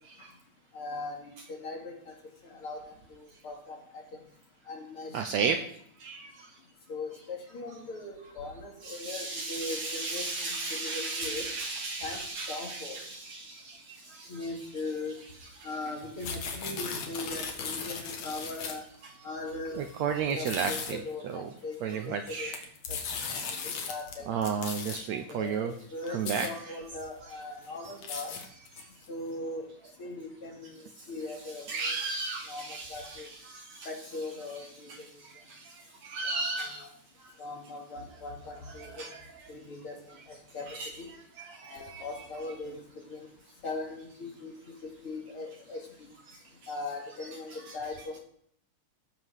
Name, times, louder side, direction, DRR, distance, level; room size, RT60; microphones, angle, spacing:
voice 1, 0.7-2.1 2.4-2.8 3.1-3.8 4.7-5.7 6.9-11.5 12.0-12.2 12.5-13.0 14.3-15.2 15.6-18.8 19.2-22.5 22.9-23.0 23.9-24.5 25.1-28.3 29.1-29.7 30.0-31.9 32.5-33.3 33.8-34.9 36.3-36.9 37.4-39.1 39.5-40.7 41.0-41.1 41.7-42.8 43.1-43.2 43.6-44.7 45.0-45.8 46.7-48.2, left 2 dB, 45° left, 0 dB, 3.2 m, -39 dB
voice 2, 5.1-5.6 6.0-6.5 8.9-14.3 19.8-21.0 21.2-21.4 21.8-22.6 24.3-25.7 26.1-26.5 28.8-28.9 31.7-33.2 33.5-33.9 35.5-36.8 39.0-39.2 40.7-40.9 41.5-42.0 46.3-46.4, right 5 dB, 70° right, 7 dB, 1.8 m, -33 dB
sound 1, 16.0-19.0 19.7-19.9 20.3-20.9 22.1-24.1 24.4-25.0 25.7-25.8 26.1-26.5 27.0-27.1 27.4-29.1, left 5 dB, 60° left, 2.8 m, -37 dB
15.5 x 7.5 x 6.4 m, 0.65 s
omnidirectional pair, 3.8 m